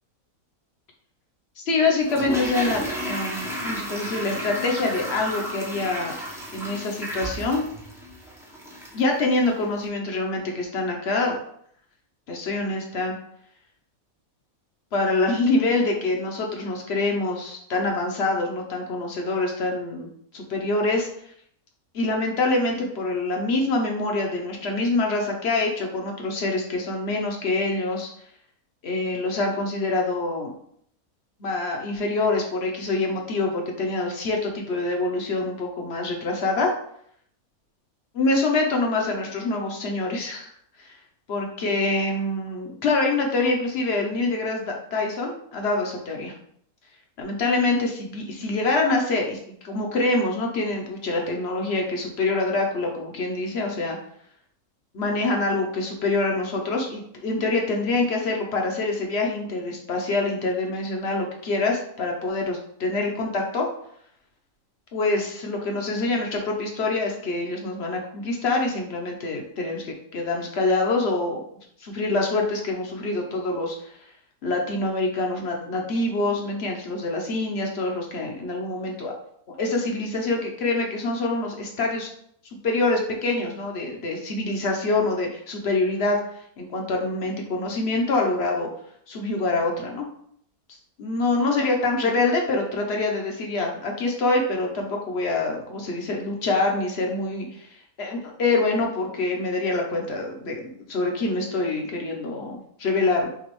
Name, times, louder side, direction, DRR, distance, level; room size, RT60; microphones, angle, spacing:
voice 1, 1.6-6.1 6.5-7.6 8.9-11.4 12.3-13.2 14.9-20.1 20.3-21.1 21.9-28.1 28.8-30.5 31.4-36.7 38.1-40.5 40.8-40.9 41.3-46.3 47.2-54.0 54.9-63.7 64.9-71.4 71.8-73.9 74.4-79.1 79.6-82.1 82.6-86.2 86.6-88.7 89.1-90.1 91.0-97.7 98.0-103.3, left 2 dB, 50° left, 1 dB, 0.9 m, -25 dB
Toilet flush, 2.0-9.1 9.4-9.5, equal, 5° right, 0.5 m, -32 dB
6.0 x 2.4 x 3.0 m, 0.67 s
omnidirectional pair, 1.5 m